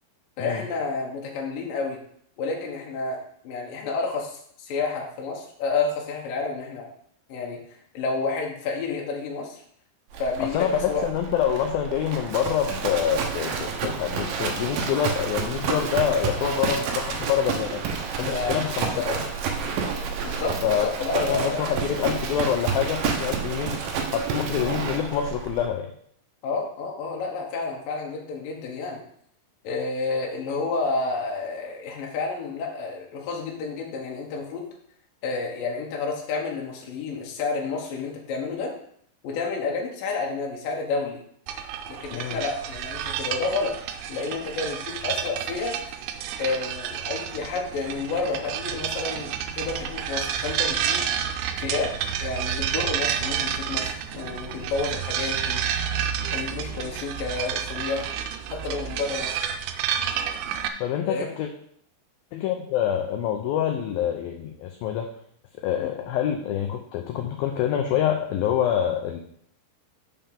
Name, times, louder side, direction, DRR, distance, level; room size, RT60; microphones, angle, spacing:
voice 1, 0.4-2.0 2.4-3.2 3.4-4.3 4.6-6.9 7.3-7.6 7.9-9.6 10.2-11.0 18.2-18.6 18.9-19.2 20.2-21.7 26.4-29.0 29.6-34.6 35.2-38.7 39.2-41.2 42.0-43.7 44.1-45.7 46.4-51.0 51.6-51.9 52.2-55.6 56.3-58.2 58.5-59.3 61.1-61.3 65.8-65.9, left 4 dB, 65° left, -1 dB, 2.5 m, -30 dB
Livestock farm animals working animals, 10.1-25.7, right 6 dB, 70° right, 2.4 m, -30 dB
voice 2, 10.5-17.8 18.2-18.9 20.6-23.9 24.1-25.9 42.1-42.4 60.8-61.5 62.3-65.1 65.6-69.2, left 9 dB, 85° left, 4 dB, 2.0 m, -26 dB
sound 1, 41.5-60.7, right 9 dB, 90° right, 2.9 m, -30 dB
6.9 x 5.6 x 7.0 m, 0.66 s
omnidirectional pair, 5.1 m